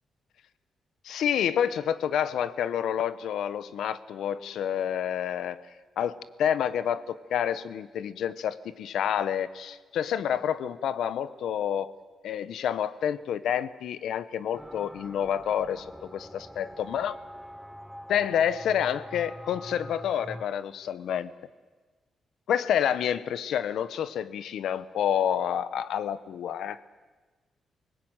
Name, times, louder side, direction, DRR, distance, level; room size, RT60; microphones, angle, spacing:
voice 1, 1.0-5.6 6.0-11.9 12.2-17.2 18.1-21.3 22.5-26.8, left 9 dB, 90° left, 14 dB, 1.1 m, -28 dB
sound 1, 14.5-20.5, equal, ahead, 0.8 m, -44 dB
28.0 x 19.5 x 9.1 m, 1.3 s
wide cardioid pair, 170°, 0 cm